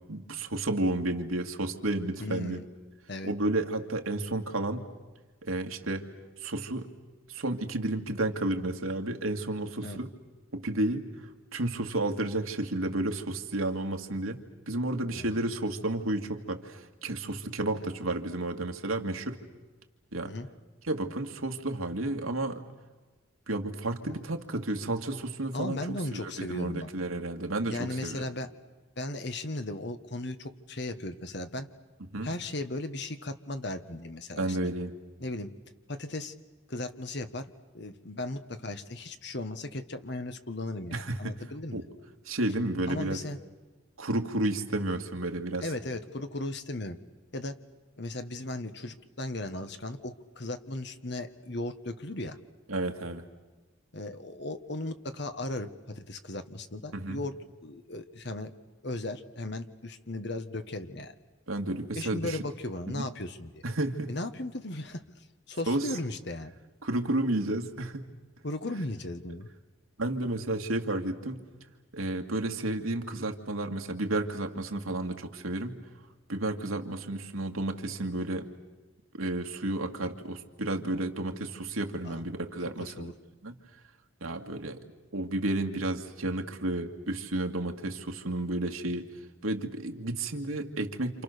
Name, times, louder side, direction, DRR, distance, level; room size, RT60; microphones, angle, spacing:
voice 1, 0.1-2.6 3.2-4.8 5.4-6.0 6.4-6.9 7.3-10.1 10.5-11.0 11.5-14.4 14.7-19.4 20.1-20.3 20.9-22.6 23.5-28.2 32.1-32.3 34.4-34.9 40.9-41.3 41.7-41.8 42.3-43.2 44.0-45.6 52.7-53.2 56.9-57.2 61.5-62.4 62.9-63.1 63.6-64.1 65.7-65.9 66.8-68.0 70.0-71.4 71.9-75.8 76.3-78.5 79.2-83.1 83.4-83.5 84.2-84.8 85.1-89.1 89.4-91.2, right 2 dB, 90° right, 4 dB, 2.3 m, -31 dB
voice 2, 2.2-2.7 3.1-3.3 9.8-10.0 15.1-15.3 17.7-17.8 20.2-20.5 24.0-24.2 25.5-26.9 27.7-28.5 29.0-31.7 32.2-34.6 35.2-35.5 35.9-36.3 36.7-37.5 37.7-41.8 42.9-43.4 45.6-47.0 47.3-47.5 48.0-52.4 53.9-57.3 57.6-58.5 58.8-61.1 61.9-63.6 64.1-65.0 65.5-66.5 68.4-69.5 82.0-82.2 82.8-83.1, left 2 dB, 55° left, 9 dB, 1.5 m, -36 dB
28.5 x 28.0 x 6.8 m, 1.3 s
head